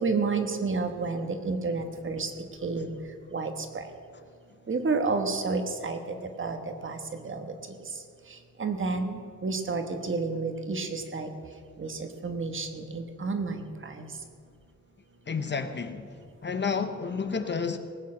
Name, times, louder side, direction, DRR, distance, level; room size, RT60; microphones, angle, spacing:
voice 1, 0.0-2.3 2.6-2.9 3.3-3.8 4.7-7.4 8.6-11.3 11.8-14.0, right 4 dB, 45° right, 1.3 m, -30 dB
voice 2, 15.3-16.1 16.4-17.8, left 5 dB, 40° left, 0.7 m, -30 dB
19.5 x 8.4 x 6.3 m
wide cardioid pair, 175°, 29 cm